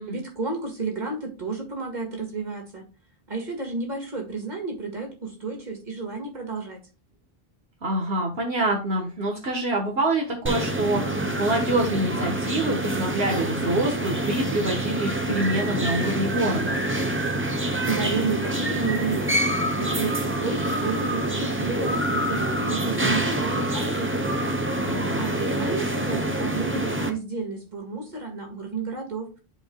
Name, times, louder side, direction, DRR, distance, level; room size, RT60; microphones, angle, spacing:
voice 1, 0.1-2.8 3.3-6.8 17.8-19.4 19.8-24.4 25.2-29.3, right 4 dB, 45° right, 1 dB, 2.1 m, -31 dB
voice 2, 7.8-16.8 24.8-25.2, right 1 dB, 75° right, 0 dB, 1.6 m, -26 dB
sound 1, 10.5-27.1, right 1 dB, 15° right, 0.7 m, -26 dB
12.0 x 4.7 x 2.3 m, 0.32 s
omnidirectional pair, 1.1 m